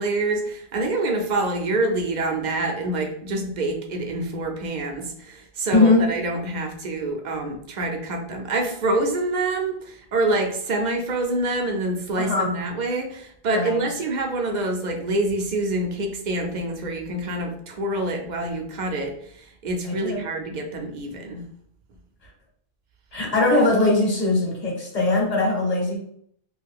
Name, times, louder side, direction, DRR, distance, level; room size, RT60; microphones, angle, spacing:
voice 1, 0.0-21.4, right 2 dB, 50° right, 3 dB, 0.6 m, -26 dB
voice 2, 5.7-6.0 12.2-12.5 13.5-13.8 19.8-20.2 23.1-26.0, left 2 dB, 35° left, -2 dB, 1.0 m, -20 dB
2.6 x 2.3 x 3.4 m, 0.65 s
omnidirectional pair, 1.2 m